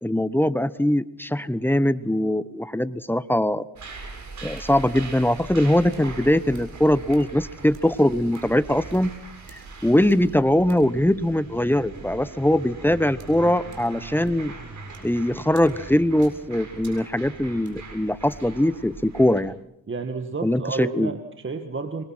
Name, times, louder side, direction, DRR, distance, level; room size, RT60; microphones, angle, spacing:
voice 1, 0.0-3.6 4.4-9.1 9.5-14.5 15.0-19.6 20.4-21.1, left 1 dB, 5° left, 15 dB, 1.1 m, -22 dB
sound 1, 3.8-19.4, right 3 dB, 55° right, 7.6 m, -41 dB
voice 2, 19.9-22.0, right 4 dB, 35° right, 7 dB, 2.1 m, -31 dB
26.0 x 23.0 x 6.2 m, 0.76 s
cardioid pair, 80°, 35 cm